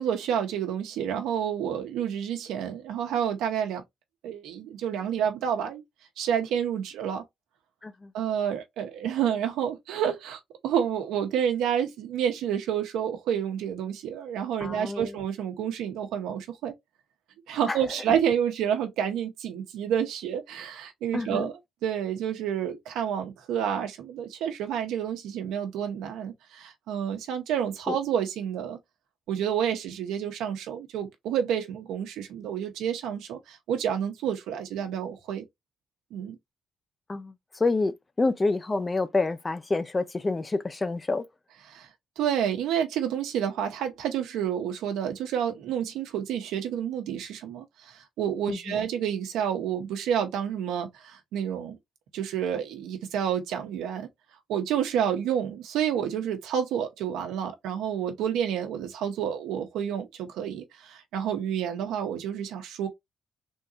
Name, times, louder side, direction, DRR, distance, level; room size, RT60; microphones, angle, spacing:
voice 1, 0.0-3.8 4.2-5.8 6.2-7.2 8.1-16.7 17.5-21.5 21.8-28.8 29.3-35.4 36.1-36.4 41.7-41.9 42.2-51.8 52.1-54.1 54.5-62.9, right 9 dB, 90° right, 0.9 m, -29 dB
voice 2, 7.8-8.1 14.6-15.2 17.7-17.8 21.1-21.5 27.9-28.0 37.1-41.3 48.5-48.8, left 3 dB, 25° left, 0.5 m, -28 dB
3.7 x 2.8 x 2.3 m
cardioid pair, 90°, 0 cm